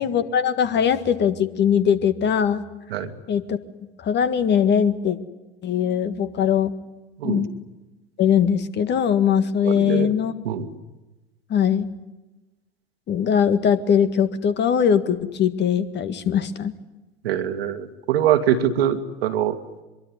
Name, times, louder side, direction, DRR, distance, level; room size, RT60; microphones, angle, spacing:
voice 1, 0.0-2.6 3.3-3.6 4.0-5.2 5.6-6.7 7.2-7.5 8.2-10.3 11.5-11.9 13.1-16.7, left 8 dB, 35° left, 11 dB, 1.8 m, -21 dB
voice 2, 9.6-10.1 10.4-10.7 17.2-19.6, right 10 dB, 65° right, 8 dB, 2.2 m, -23 dB
23.5 x 23.0 x 9.8 m, 1.1 s
figure-of-eight pair, 80°, 33 cm